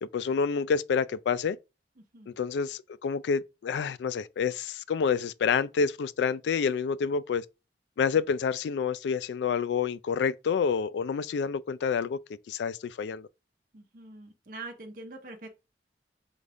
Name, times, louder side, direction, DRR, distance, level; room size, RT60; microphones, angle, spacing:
voice 1, 0.0-1.6 2.3-7.4 8.0-12.2 12.5-13.3, left 6 dB, 80° left, 0.3 m, -28 dB
voice 2, 13.7-15.5, right 2 dB, 50° right, 0.8 m, -44 dB
3.9 x 3.5 x 3.4 m
head